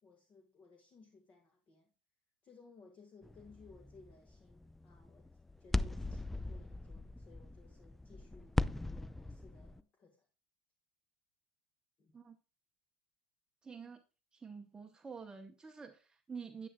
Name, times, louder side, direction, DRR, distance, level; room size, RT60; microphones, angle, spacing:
voice 1, 0.0-1.9 2.4-5.3 5.6-10.3 12.0-12.1, left 4 dB, 35° left, 1.5 m, -61 dB
sound 1, 3.2-9.8, left 2 dB, 5° left, 0.3 m, -39 dB
voice 2, 13.6-14.0 14.3-16.7, right 5 dB, 15° right, 0.8 m, -48 dB
9.8 x 9.5 x 2.2 m
hypercardioid pair, 95°, 4 cm